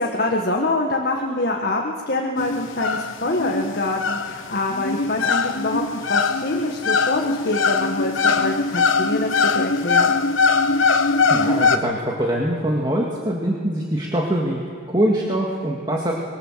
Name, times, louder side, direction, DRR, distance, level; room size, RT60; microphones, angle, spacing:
voice 1, 0.0-10.1, left 2 dB, 50° left, 1 dB, 1.8 m, -25 dB
sound 1, 2.4-11.8, left 4 dB, 75° left, 1.1 m, -21 dB
voice 2, 11.3-14.6 14.9-16.1, right 1 dB, 20° right, -2 dB, 2.2 m, -23 dB
25.0 x 22.5 x 7.6 m, 2.3 s
head